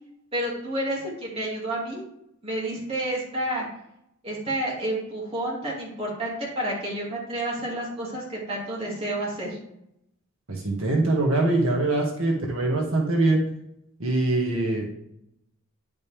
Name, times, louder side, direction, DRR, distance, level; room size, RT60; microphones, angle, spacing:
voice 1, 0.3-2.0 2.4-3.7 4.2-9.6, right 1 dB, 30° right, -5 dB, 2.4 m, -30 dB
voice 2, 10.5-13.4 14.0-14.9, right 2 dB, 70° right, -1 dB, 1.7 m, -23 dB
10.5 x 5.3 x 3.4 m, 0.77 s
head